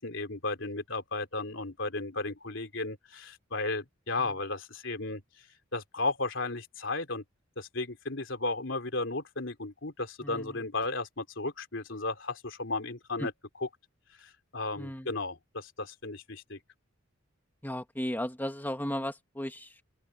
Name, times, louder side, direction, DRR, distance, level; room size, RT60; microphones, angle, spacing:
voice 1, 0.0-5.2 5.7-7.2 7.6-13.3 13.6-13.7 14.2-16.6, left 3 dB, 60° left, 3.8 m, -34 dB
voice 2, 10.2-10.6 13.2-13.3 14.8-15.1 17.6-19.8, equal, 10° left, 2.0 m, -35 dB
open air
head